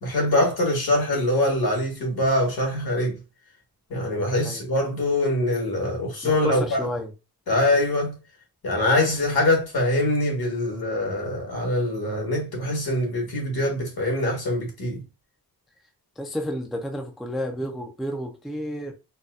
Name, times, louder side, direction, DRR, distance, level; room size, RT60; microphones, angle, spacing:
voice 1, 0.0-3.2 3.9-6.8 7.5-8.1 8.6-15.0, left 1 dB, 70° left, 1.6 m, -23 dB
voice 2, 6.2-7.1 16.2-18.9, equal, ahead, 0.4 m, -31 dB
4.1 x 2.2 x 2.4 m
wide cardioid pair, 135°, 38 cm